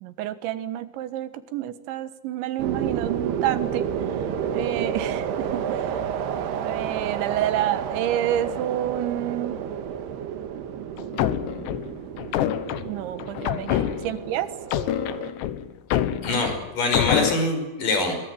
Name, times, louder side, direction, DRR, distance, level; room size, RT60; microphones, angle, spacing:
voice 1, 0.0-3.9 4.5-5.9 6.6-9.6 12.8-14.5, right 12 dB, 85° right, 12 dB, 3.7 m, -29 dB
sound 1, 2.6-15.3, right 8 dB, 70° right, 3.4 m, -30 dB
sound 2, 11.0-14.3 14.7-17.3, left 11 dB, 75° left, 3.3 m, -26 dB
voice 2, 16.2-18.1, left 2 dB, 50° left, 5 dB, 7.0 m, -24 dB
24.0 x 22.5 x 7.7 m, 1.1 s
omnidirectional pair, 5.1 m